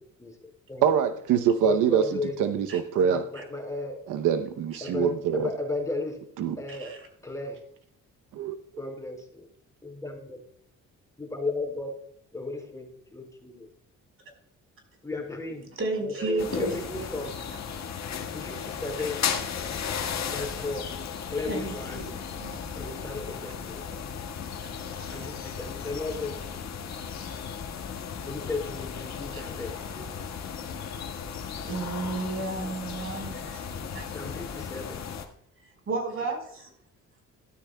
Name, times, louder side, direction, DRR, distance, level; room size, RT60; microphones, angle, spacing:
voice 1, 0.8-3.2 4.1-5.5 6.4-6.6 8.3-8.6, right 8 dB, 85° right, 9 dB, 0.8 m, -25 dB
voice 2, 1.6-2.7 2.9-4.0 4.8-6.2 6.6-6.9 7.2-7.6 8.8-9.5 9.8-10.4 11.2-11.9 12.3-13.7 15.0-15.7 16.0-17.3 18.3-18.5 18.8-19.2 20.2-20.9 21.3-22.0 22.7-23.8 25.1-26.3 28.2-30.1 34.1-35.0, left 3 dB, 10° left, 1 dB, 4.7 m, -34 dB
voice 3, 6.7-7.1 15.7-16.8 17.2-17.6 21.5-22.6 24.9-25.0 29.3-29.4 31.7-33.6 33.9-34.3 35.9-36.7, right 3 dB, 45° right, 3 dB, 4.5 m, -33 dB
sound 1, 16.4-35.2, left 7 dB, 60° left, 1.7 m, -35 dB
13.5 x 12.0 x 2.3 m, 0.68 s
cardioid pair, 90°, 30 cm